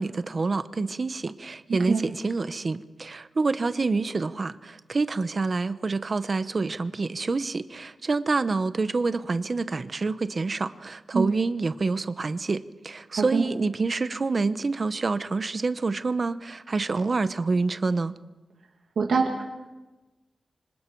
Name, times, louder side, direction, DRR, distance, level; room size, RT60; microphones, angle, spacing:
voice 1, 0.0-18.1, right 3 dB, 35° right, 12 dB, 0.8 m, -27 dB
voice 2, 13.1-13.4 19.0-19.4, right 4 dB, 85° right, 0 dB, 2.3 m, -24 dB
26.0 x 26.0 x 4.6 m, 1.1 s
wide cardioid pair, 170°, 0 cm